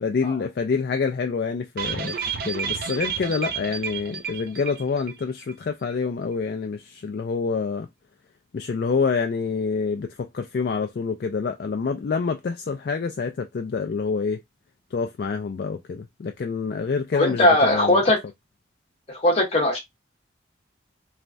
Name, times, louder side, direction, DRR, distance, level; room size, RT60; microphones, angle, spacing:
voice 1, 0.0-2.2 2.4-7.9 8.5-14.4 14.9-18.0, left 5 dB, 50° left, 0.3 m, -27 dB
sound 1, 1.8-5.2 5.5-5.6 5.9-6.0, right 6 dB, 50° right, 0.4 m, -31 dB
voice 2, 17.1-18.2 19.1-19.8, left 1 dB, 30° left, 0.9 m, -19 dB
3.2 x 2.2 x 2.5 m
head